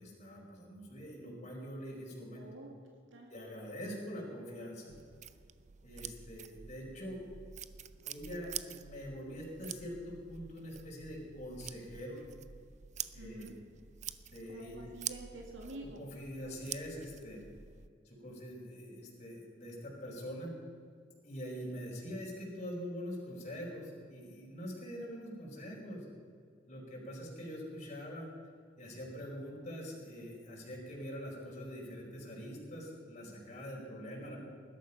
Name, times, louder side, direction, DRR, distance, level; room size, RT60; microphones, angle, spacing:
voice 1, 0.0-2.4 3.3-4.9 5.8-7.2 8.1-12.2 13.1-13.5 14.3-14.9 16.0-17.4 18.0-20.5 21.2-26.1 26.7-28.3 28.8-34.4, equal, 40° left, -3 dB, 4.9 m, -44 dB
voice 2, 2.4-2.7 3.1-3.4 13.2-13.6 14.5-16.0 16.4-16.5 34.0-34.3, right 2 dB, 80° right, 1 dB, 2.3 m, -49 dB
sound 1, 4.9-17.9, right 9 dB, 40° right, 0.6 m, -47 dB
20.5 x 12.0 x 5.6 m, 2.2 s
head